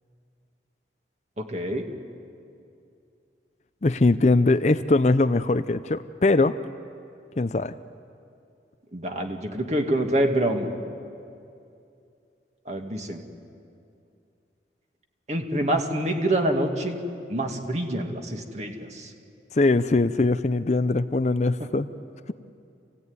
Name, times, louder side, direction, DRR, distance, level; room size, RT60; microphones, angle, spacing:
voice 1, 1.4-1.9 8.9-10.7 12.7-13.2 15.3-17.0 17.3-19.1 21.6-21.7, right 1 dB, 40° right, 3 dB, 2.2 m, -26 dB
voice 2, 3.8-6.6 7.4-7.7 19.5-21.9, left 2 dB, 40° left, 11 dB, 0.5 m, -21 dB
28.0 x 17.0 x 9.7 m, 2.6 s
head